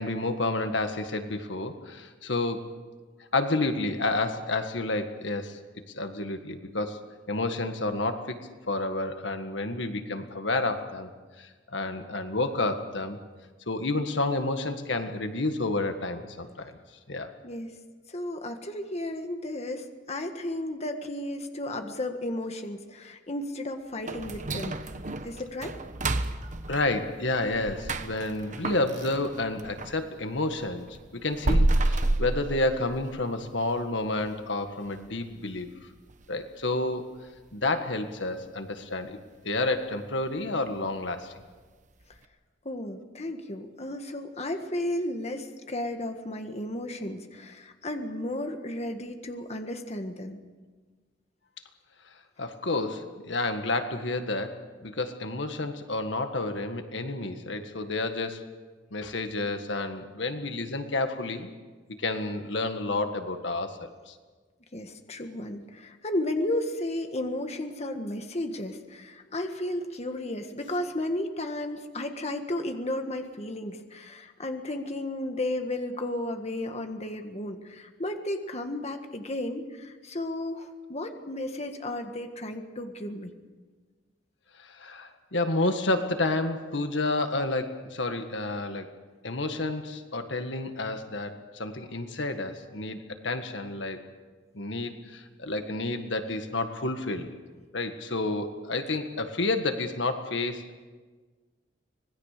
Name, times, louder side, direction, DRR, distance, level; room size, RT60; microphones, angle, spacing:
voice 1, 0.0-2.7 3.3-5.6 5.9-7.0 7.3-8.4 8.7-11.1 11.4-13.2 13.7-16.8 17.1-17.3 26.7-35.7 36.3-37.1 37.5-39.2 39.4-41.3 52.0-58.4 58.9-61.5 62.0-63.8 64.1-64.2 84.6-88.9 89.2-94.1 94.5-97.4 97.7-100.8, left 2 dB, 70° left, 7 dB, 1.7 m, -30 dB
voice 2, 17.4-17.7 18.1-24.8 25.2-25.8 42.6-50.4 64.7-83.3, left 1 dB, 35° left, 6 dB, 1.6 m, -33 dB
sound 1, 24.1-30.0 30.4-33.2 33.6-33.7 34.2-34.3 34.8-35.1 35.4-35.5 36.1-36.2, right 2 dB, 40° right, 1.2 m, -30 dB
25.5 x 20.5 x 6.7 m, 1.4 s
head